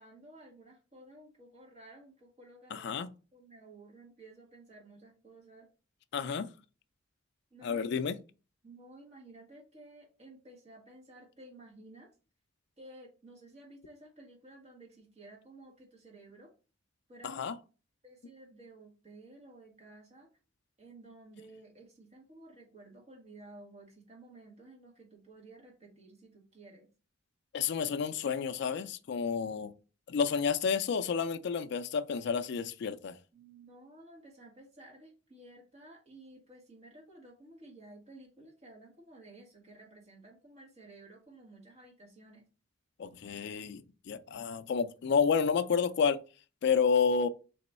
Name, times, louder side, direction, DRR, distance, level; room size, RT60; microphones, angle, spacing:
voice 1, 0.0-2.9 3.3-5.7 7.5-7.9 8.6-12.1 12.8-16.5 17.1-17.4 18.0-20.3 20.8-26.9 33.3-42.4, right 2 dB, 35° right, 1.5 m, -54 dB
voice 2, 2.7-3.1 6.1-6.5 7.6-8.2 17.2-17.6 27.5-29.7 30.1-33.2 43.0-46.2 46.6-47.3, left 6 dB, 60° left, 0.3 m, -30 dB
3.5 x 3.0 x 4.2 m
head